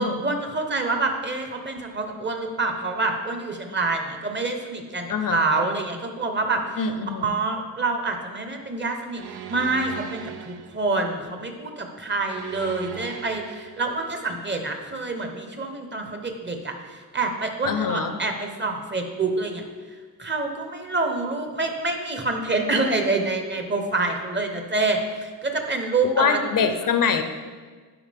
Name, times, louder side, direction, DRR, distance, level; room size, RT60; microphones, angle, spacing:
voice 1, 0.0-6.8 7.1-19.6 20.2-26.4, right 3 dB, 30° right, 4 dB, 1.0 m, -27 dB
voice 2, 5.1-5.7 6.8-7.3 17.6-18.2 26.0-27.2, left 6 dB, 55° left, 8 dB, 0.7 m, -24 dB
sound 1, 9.2-10.9 12.2-13.9, right 10 dB, 75° right, 0.6 m, -39 dB
11.0 x 4.9 x 3.5 m, 1.5 s
cardioid pair, 90°, 38 cm